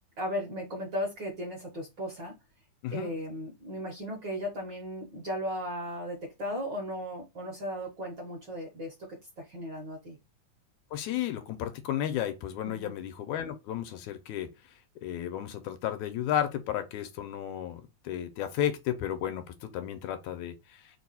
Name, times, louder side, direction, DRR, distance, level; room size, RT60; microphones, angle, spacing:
voice 1, 0.2-2.3 2.9-8.9 9.4-10.2 12.6-12.9, equal, 55° right, 1.3 m, -36 dB
voice 2, 2.8-3.2 10.9-14.5 15.0-20.8, left 11 dB, 80° left, 2.0 m, -33 dB
4.7 x 2.2 x 4.1 m
omnidirectional pair, 3.5 m